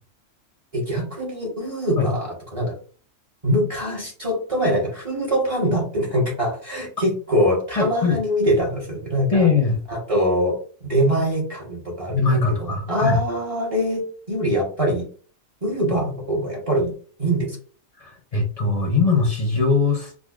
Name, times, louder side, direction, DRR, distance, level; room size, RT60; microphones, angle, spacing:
voice 1, 0.7-2.7 3.4-9.4 9.9-12.2 12.9-15.0 15.6-16.9 17.2-17.6, equal, 30° right, -3 dB, 1.0 m, -23 dB
voice 2, 7.8-8.2 9.3-9.8 12.1-13.2 18.0-20.1, left 4 dB, 35° left, 2 dB, 0.6 m, -21 dB
4.9 x 2.3 x 2.3 m, 0.42 s
omnidirectional pair, 1.3 m